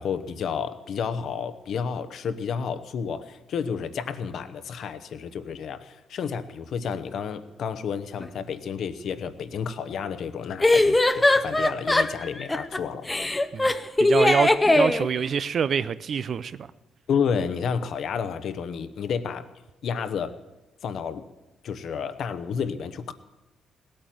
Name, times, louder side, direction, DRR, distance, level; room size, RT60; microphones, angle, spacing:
voice 1, 0.0-13.1 17.1-19.5 19.8-20.3 20.8-21.2 21.6-23.1, left 6 dB, 65° left, 1.0 m, -31 dB
sound 1, 8.2-8.3 10.6-12.8 13.1-15.1, left 2 dB, 15° left, 0.8 m, -20 dB
voice 2, 14.0-16.7, right 7 dB, 55° right, 0.6 m, -26 dB
17.5 x 8.9 x 7.7 m
cardioid pair, 90°, 0 cm